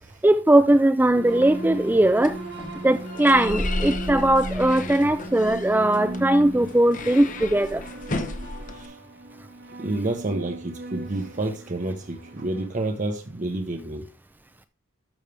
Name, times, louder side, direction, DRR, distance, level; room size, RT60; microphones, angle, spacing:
voice 1, 0.2-2.4 2.8-7.8, right 1 dB, 10° right, 0.4 m, -19 dB
sound 1, 1.1-12.7, right 1 dB, 55° right, 1.3 m, -36 dB
sound 2, 1.3-8.9, left 2 dB, 40° left, 0.9 m, -34 dB
voice 2, 9.8-14.1, right 2 dB, 40° right, 0.9 m, -29 dB
12.0 x 6.4 x 3.3 m
head